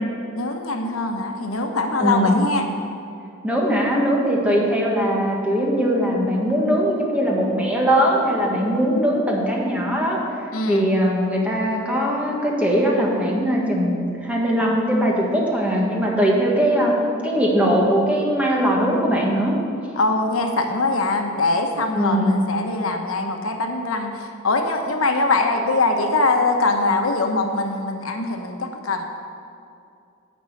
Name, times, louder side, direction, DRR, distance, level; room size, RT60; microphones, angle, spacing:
voice 1, 0.4-2.6 10.5-10.8 20.0-29.0, left 3 dB, 90° left, 4 dB, 1.0 m, -22 dB
voice 2, 2.0-2.4 3.4-16.9 17.2-19.6 21.9-22.4, equal, 5° right, -3 dB, 1.6 m, -20 dB
10.5 x 5.5 x 8.3 m, 2.5 s
head